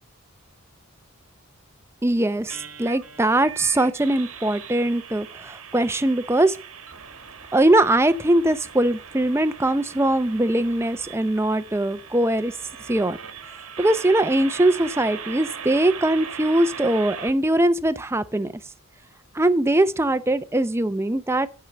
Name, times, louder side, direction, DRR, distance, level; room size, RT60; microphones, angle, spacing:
voice 1, 2.0-6.6 7.5-12.5 12.9-13.2 13.8-18.5 19.4-21.5, right 1 dB, 10° right, 0.5 m, -21 dB
sound 1, 2.5-17.3, right 7 dB, 80° right, 1.7 m, -39 dB
11.0 x 4.6 x 6.6 m
head